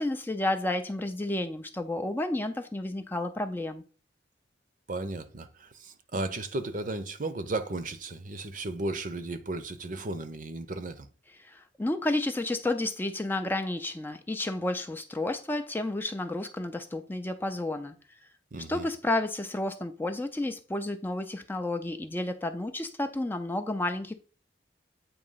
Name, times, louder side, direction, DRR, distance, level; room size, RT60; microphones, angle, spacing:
voice 1, 0.0-3.8 11.4-17.9 18.7-24.1, left 2 dB, 10° left, 0.4 m, -31 dB
voice 2, 4.9-11.1 18.5-18.9, right 2 dB, 45° right, 0.7 m, -35 dB
8.6 x 2.9 x 5.5 m
head